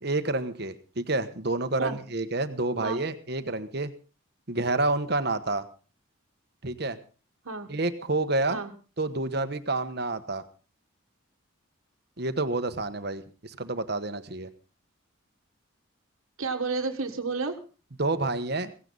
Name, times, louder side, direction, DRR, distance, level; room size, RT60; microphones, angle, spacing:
voice 1, 0.0-3.9 4.5-5.7 6.6-7.0 7.7-8.6 9.0-10.4 12.2-14.5 18.0-18.7, right 2 dB, 50° right, 10 dB, 1.2 m, -29 dB
voice 2, 16.4-17.6, right 4 dB, 85° right, 4 dB, 1.6 m, -31 dB
16.5 x 16.0 x 3.9 m, 0.36 s
head